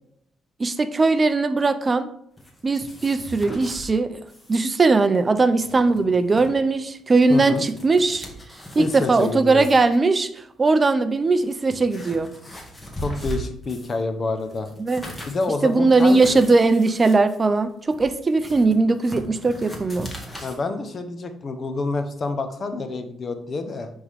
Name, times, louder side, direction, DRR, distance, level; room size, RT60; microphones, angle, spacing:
voice 1, 0.6-2.1 2.6-4.2 4.5-8.3 8.8-10.3 10.6-12.3 14.8-15.0 15.6-20.1, right 3 dB, 30° right, 11 dB, 0.5 m, -19 dB
sound 1, 2.4-3.9 4.3-4.6 4.9-5.0 5.4-6.5 7.0-9.3 9.6-10.0 10.7-10.8 11.3-14.0 14.4-20.6, equal, 15° left, 1.7 m, -39 dB
voice 2, 7.3-7.6 8.8-9.7 13.0-14.7 15.2-16.4 20.4-23.9, left 3 dB, 40° left, 8 dB, 0.9 m, -28 dB
9.7 x 3.6 x 3.5 m, 0.73 s
cardioid pair, 90°, 0 cm